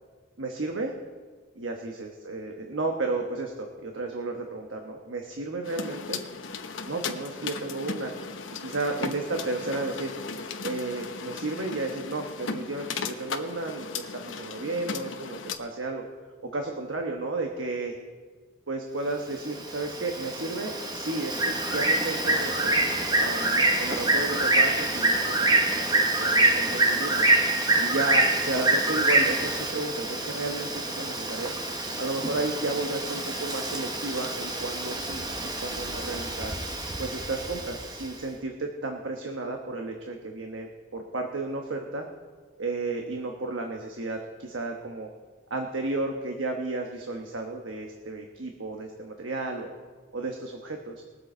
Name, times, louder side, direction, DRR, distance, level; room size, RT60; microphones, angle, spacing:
voice 1, 0.4-0.9 1.6-6.2 6.9-8.1 8.6-10.1 10.6-16.0 16.4-18.0 18.7-22.8 23.2-25.9 26.2-27.3 27.8-31.6 32.0-36.5 37.0-42.1 42.6-45.1 45.5-49.7 50.1-51.0, right 2 dB, 90° right, 3 dB, 1.1 m, -33 dB
sound 1, 5.6-15.5, left 5 dB, 90° left, 0.9 m, -36 dB
Bird, 19.3-38.1, right 2 dB, 20° right, 1.0 m, -26 dB
21.0 x 7.9 x 4.4 m, 1.5 s
head